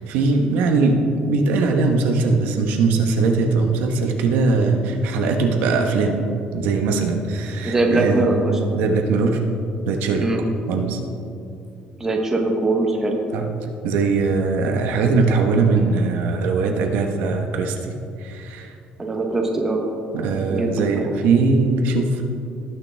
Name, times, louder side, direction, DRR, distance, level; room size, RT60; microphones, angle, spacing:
voice 1, 0.1-6.2 6.5-9.4 9.8-10.3 10.7-11.0 13.3-13.5 13.8-18.7 20.1-22.2, right 4 dB, 90° right, 3 dB, 1.2 m, -20 dB
voice 2, 7.6-8.7 10.2-10.5 12.0-13.2 19.0-19.9 20.5-20.9, right 2 dB, 15° right, 1 dB, 1.1 m, -22 dB
18.5 x 6.8 x 3.5 m, 2.6 s
cardioid pair, 165°, 3 cm